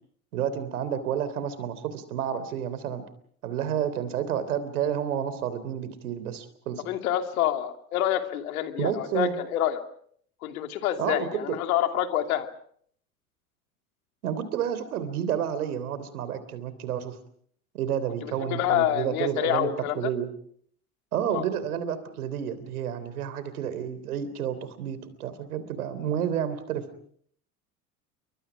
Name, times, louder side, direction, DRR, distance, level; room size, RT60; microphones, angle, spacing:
voice 1, 0.3-3.0 3.4-6.9 8.8-9.3 11.0-11.6 14.2-17.2 17.7-19.7 20.0-20.3 21.1-26.8, right 9 dB, 80° right, 13 dB, 3.5 m, -30 dB
voice 2, 6.9-9.8 10.4-12.5 18.2-20.1 21.3-21.5, left 11 dB, 75° left, 6 dB, 2.7 m, -27 dB
29.0 x 24.5 x 5.0 m, 0.62 s
hypercardioid pair, 80°, 44 cm